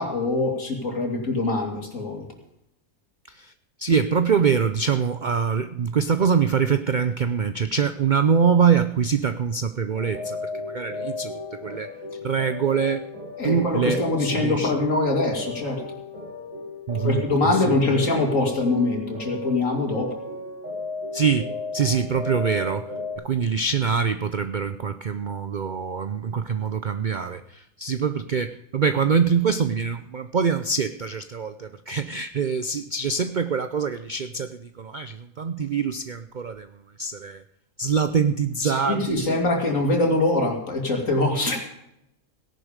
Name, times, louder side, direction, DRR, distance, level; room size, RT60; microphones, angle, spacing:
voice 1, 0.0-2.2 13.4-15.8 17.0-20.2 38.6-41.6, left 2 dB, 55° left, 2 dB, 3.2 m, -23 dB
voice 2, 3.8-10.4 10.7-11.9 12.2-13.0 13.4-14.7 16.9-17.2 17.5-18.0 21.1-22.9 23.2-36.7 37.0-37.4 37.8-39.3, right 6 dB, 70° right, 11 dB, 0.4 m, -24 dB
sound 1, 9.9-23.2, left 3 dB, 50° right, 6.9 m, -35 dB
17.5 x 11.0 x 5.1 m, 0.82 s
omnidirectional pair, 1.7 m